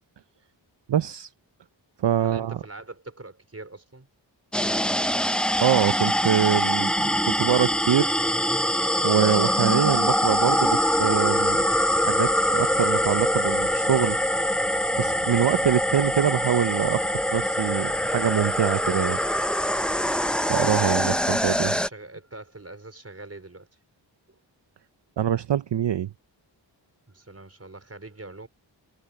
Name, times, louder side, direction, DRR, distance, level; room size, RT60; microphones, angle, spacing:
voice 1, 0.9-1.3 2.0-2.6 5.6-8.2 9.0-11.7 11.9-14.2 15.0-19.2 20.2-21.7 25.2-26.1, right 9 dB, 65° right, 0.7 m, -24 dB
voice 2, 2.2-4.1 21.1-21.3 21.7-23.7 24.3-24.4 27.1-28.5, right 2 dB, 30° right, 4.8 m, -43 dB
sound 1, 4.5-21.9, equal, ahead, 0.7 m, -24 dB
wide cardioid pair, 70°, 46 cm